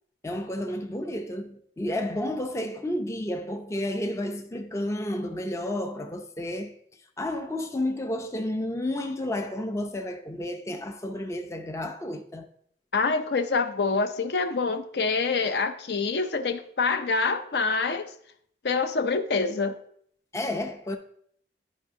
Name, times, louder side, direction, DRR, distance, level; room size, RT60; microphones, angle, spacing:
voice 1, 0.2-6.7 7.2-12.5 15.4-15.6 20.3-21.0, left 1 dB, 15° left, 0.4 m, -31 dB
voice 2, 12.9-18.1 18.6-19.8, left 4 dB, 65° left, 0.5 m, -26 dB
11.5 x 4.8 x 2.7 m
head